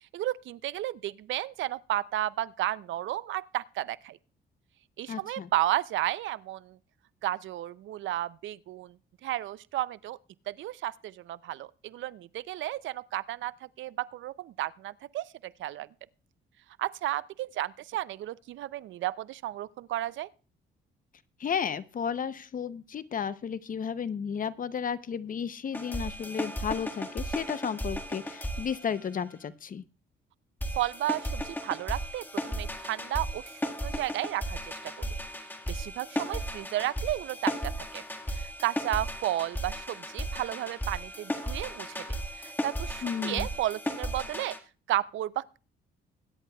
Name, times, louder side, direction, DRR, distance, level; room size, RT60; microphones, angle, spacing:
voice 1, 0.1-4.2 5.0-6.8 7.2-9.0 9.2-10.2 10.5-15.9 16.8-20.3 30.8-35.1 35.7-38.0 38.3-44.6 44.9-45.6, right 14 dB, 75° right, 0.5 m, -33 dB
voice 2, 5.1-5.5 21.4-29.8 43.0-43.5, left 7 dB, 45° left, 0.7 m, -33 dB
sound 1, 25.7-29.5 30.6-44.6, equal, 10° left, 1.7 m, -35 dB
21.0 x 9.8 x 2.3 m
cardioid pair, 90°, 20 cm